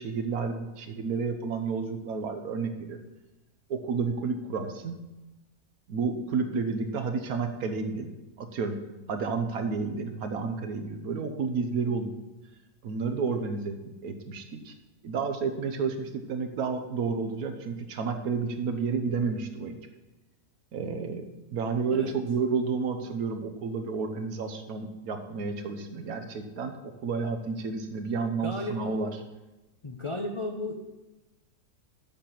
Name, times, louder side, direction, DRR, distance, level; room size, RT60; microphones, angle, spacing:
voice 1, 0.0-3.0 3.7-5.0 5.9-8.1 8.4-8.8 9.1-12.1 12.8-13.8 14.0-14.7 15.0-19.7 20.7-29.1, right 5 dB, 70° right, 7 dB, 1.3 m, -31 dB
voice 2, 28.4-28.9 29.8-30.8, left 2 dB, 55° left, 2 dB, 0.3 m, -34 dB
7.4 x 6.8 x 5.9 m, 1.1 s
omnidirectional pair, 1.7 m